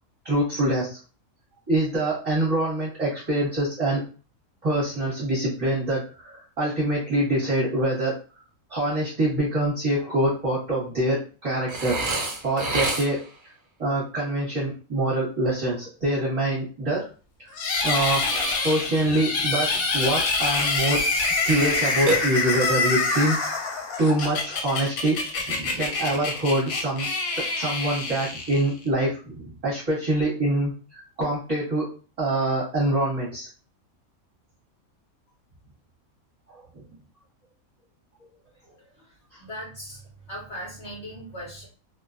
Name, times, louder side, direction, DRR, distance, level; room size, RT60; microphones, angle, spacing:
voice 1, 0.2-1.0 1.7-4.0 4.6-8.1 8.7-12.0 12.4-13.2 13.8-17.1 17.4-17.5 17.8-19.7 19.9-21.0 21.4-23.4 24.0-27.1 27.5-31.9 32.2-33.5 36.5-36.8, right 1 dB, 30° right, -9 dB, 0.9 m, -25 dB
Burping eructation, 11.7-13.4 22.1-22.8, right 2 dB, 55° right, 0.6 m, -28 dB
sound 1, 17.6-28.9, left 3 dB, 85° left, 1.0 m, -26 dB
voice 2, 39.4-41.7, equal, 60° left, -5 dB, 0.9 m, -38 dB
2.4 x 2.1 x 2.4 m, 0.37 s
omnidirectional pair, 1.5 m